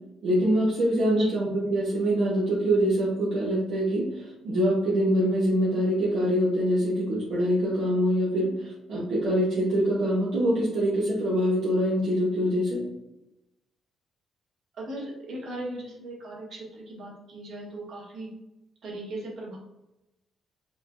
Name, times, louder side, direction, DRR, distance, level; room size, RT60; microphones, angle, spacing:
voice 1, 0.2-12.8, equal, 80° right, -8 dB, 0.9 m, -24 dB
voice 2, 14.8-18.3 18.8-19.6, right 1 dB, 60° right, -4 dB, 1.4 m, -38 dB
4.5 x 2.2 x 2.4 m, 0.92 s
cardioid pair, 90°, 0 cm